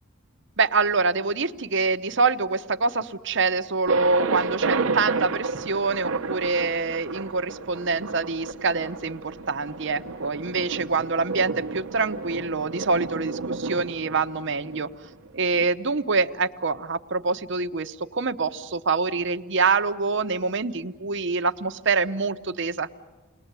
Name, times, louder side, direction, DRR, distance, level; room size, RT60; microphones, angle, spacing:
voice 1, 0.6-14.9 15.3-22.9, right 4 dB, 60° right, 8 dB, 0.9 m, -25 dB
Thunder, 3.9-15.7, right 4 dB, 85° right, 1.0 m, -31 dB
29.5 x 20.5 x 8.2 m, 1.2 s
head